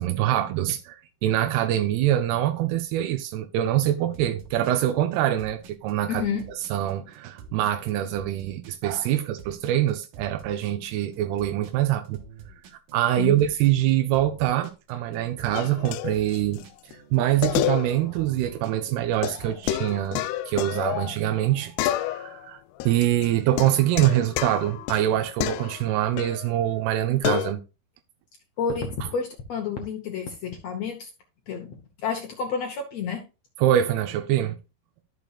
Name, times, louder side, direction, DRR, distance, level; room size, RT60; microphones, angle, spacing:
voice 1, 0.0-6.4 6.7-12.2 12.9-16.7 17.1-22.6 22.9-27.6 33.6-34.6, right 12 dB, 90° right, 2.7 m, -24 dB
sound 1, 4.1-20.1, right 5 dB, 70° right, 2.8 m, -48 dB
voice 2, 6.1-6.8 13.2-13.4 28.6-31.1 31.5-33.2, left 6 dB, 75° left, 1.5 m, -30 dB
sound 2, 15.5-16.6 16.9-17.0 17.4-18.2 18.5-18.6 19.2-21.5 21.8-22.5 22.8-26.5 27.2-27.5, left 13 dB, 90° left, 2.6 m, -29 dB
12.5 x 6.7 x 2.4 m
omnidirectional pair, 4.5 m